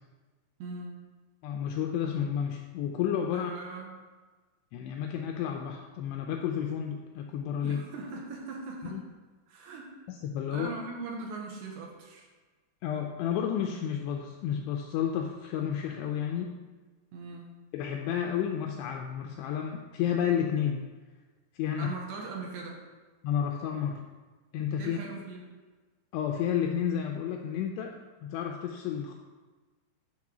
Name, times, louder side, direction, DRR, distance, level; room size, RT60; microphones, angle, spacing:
voice 1, 0.6-1.0 3.3-3.9 7.6-9.0 9.5-9.9 10.5-12.3 17.1-17.5 21.8-22.8 24.8-25.5, right 3 dB, 70° right, 0 dB, 3.0 m, -40 dB
voice 2, 1.4-3.5 4.7-7.8 8.8-9.0 10.1-10.7 12.8-16.6 17.7-20.9 21.5-21.9 23.2-24.0 24.5-25.0 26.1-29.1, left 9 dB, 85° left, 3 dB, 2.4 m, -31 dB
9.7 x 4.5 x 6.0 m, 1.3 s
omnidirectional pair, 5.3 m